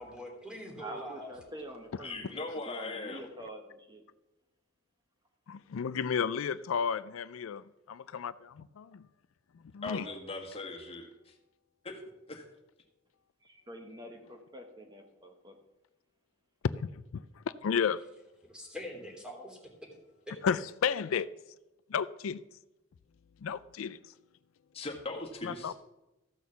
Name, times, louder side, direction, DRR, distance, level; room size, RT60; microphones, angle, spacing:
voice 1, 0.0-1.3 18.4-19.9 20.3-20.4, equal, 5° right, 2.9 m, -44 dB
voice 2, 0.8-4.0 13.4-15.6, right 1 dB, 20° right, 1.0 m, -46 dB
voice 3, 2.0-3.2 9.8-11.3 11.8-12.0 12.3-12.5 24.7-25.7, left 3 dB, 30° left, 1.7 m, -39 dB
voice 4, 5.5-9.0 9.7-10.0 16.6-18.0 20.4-21.3 21.9-22.4 23.4-24.0 25.4-25.7, left 7 dB, 80° left, 0.4 m, -32 dB
14.0 x 6.3 x 6.9 m
head